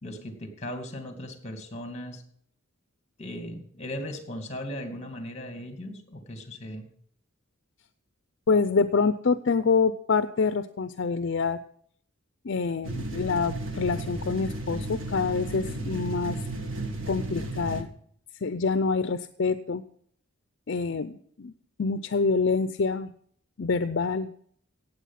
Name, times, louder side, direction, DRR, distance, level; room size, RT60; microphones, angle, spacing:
voice 1, 0.0-2.2 3.2-6.9, left 1 dB, 30° left, 6 dB, 2.3 m, -38 dB
voice 2, 8.5-11.6 12.4-16.4 17.1-17.9 18.4-19.8 20.7-21.5 21.8-23.1 23.6-24.3, left 4 dB, 60° left, 12 dB, 0.5 m, -26 dB
sound 1, 12.8-17.8, right 1 dB, 75° right, 1.8 m, -34 dB
16.5 x 8.2 x 5.8 m, 0.63 s
head